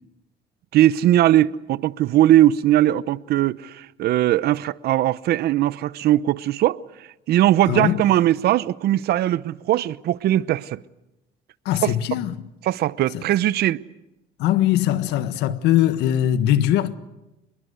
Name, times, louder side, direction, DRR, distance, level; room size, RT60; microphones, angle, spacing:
voice 1, 0.7-6.8 7.3-10.8 11.8-11.9 12.6-13.8, right 13 dB, 70° right, 0.8 m, -19 dB
voice 2, 7.7-8.0 11.6-12.4 13.1-13.2 14.4-16.9, left 12 dB, 90° left, 1.5 m, -21 dB
27.5 x 21.5 x 8.2 m
cardioid pair, 110°, 17 cm